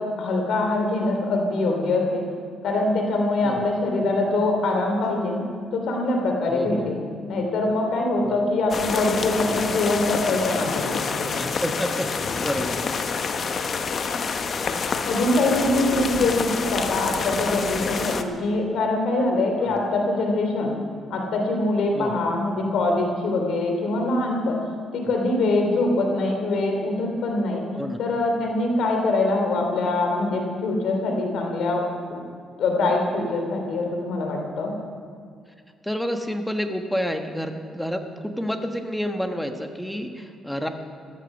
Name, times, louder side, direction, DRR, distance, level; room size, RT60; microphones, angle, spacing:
voice 1, 0.0-2.2 2.6-5.4 5.7-7.0 7.3-11.3 15.1-20.7 21.1-24.6 24.9-27.6 28.0-31.8 32.1-32.2 32.6-34.7, left 2 dB, 75° left, 2 dB, 2.8 m, -23 dB
voice 2, 6.5-6.9 8.2-8.4 11.4-12.1 12.4-12.9 19.6-19.8 21.9-22.2 25.0-25.1 27.8-28.0 35.8-40.7, equal, 5° left, 5 dB, 1.3 m, -29 dB
sound 1, 8.7-18.2, left 5 dB, 50° left, 0.9 m, -27 dB
14.0 x 14.0 x 5.4 m, 2.1 s
cardioid pair, 90°, 0 cm